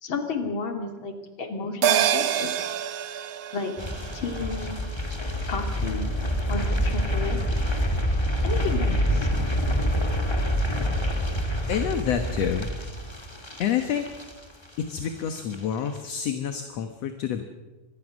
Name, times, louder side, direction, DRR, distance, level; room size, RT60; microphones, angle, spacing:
voice 1, 0.0-2.5 3.5-3.7 4.1-4.8 5.5-6.1 6.5-7.6 8.4-9.3 11.1-11.2, left 4 dB, 45° left, 5 dB, 3.1 m, -32 dB
sound 1, 1.8-6.5 6.9-7.0, right 10 dB, 80° right, 1.1 m, -28 dB
sound 2, 3.8-14.9 15.2-15.5 15.9-16.0, equal, 10° left, 2.1 m, -27 dB
voice 2, 11.7-12.7 13.6-14.1 14.8-17.4, left 8 dB, 65° left, 7 dB, 2.2 m, -28 dB
26.0 x 20.5 x 6.3 m, 1.2 s
omnidirectional pair, 3.4 m